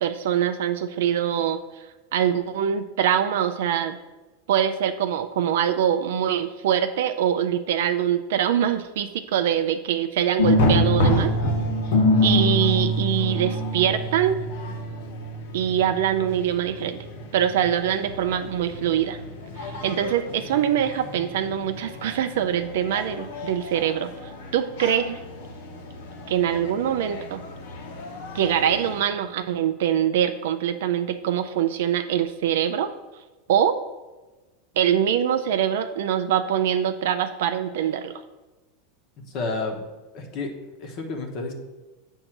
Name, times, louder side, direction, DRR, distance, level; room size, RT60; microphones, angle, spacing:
voice 1, 0.0-1.6 2.1-4.0 4.5-11.3 12.2-14.4 15.5-17.1 17.3-19.2 19.6-24.1 24.5-25.2 26.3-27.4 28.3-32.9 33.5-33.8 34.8-38.1, right 9 dB, 80° right, 8 dB, 0.3 m, -23 dB
sound 1, 10.4-29.0, left 1 dB, 75° left, 1.0 m, -27 dB
voice 2, 39.2-39.8 40.1-40.5 40.8-41.5, left 3 dB, 45° left, 2 dB, 1.0 m, -30 dB
7.6 x 2.6 x 5.9 m, 1.2 s
supercardioid pair, 135°, 0 cm